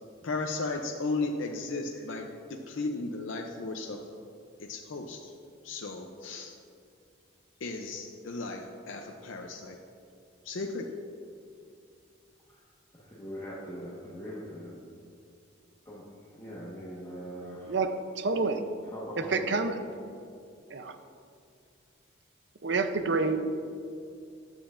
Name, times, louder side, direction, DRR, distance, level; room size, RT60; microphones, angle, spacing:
voice 1, 0.2-4.0 4.6-5.3 5.6-6.5 7.6-9.8 10.4-10.9, left 3 dB, 75° left, 2 dB, 0.6 m, -35 dB
voice 2, 12.9-14.7 15.8-17.8 18.9-19.5, equal, 20° left, -8 dB, 1.3 m, -42 dB
voice 3, 17.7-18.7 19.2-19.8 20.7-21.0 22.6-23.5, right 3 dB, 60° right, 8 dB, 0.6 m, -28 dB
14.0 x 9.1 x 2.5 m, 2.4 s
head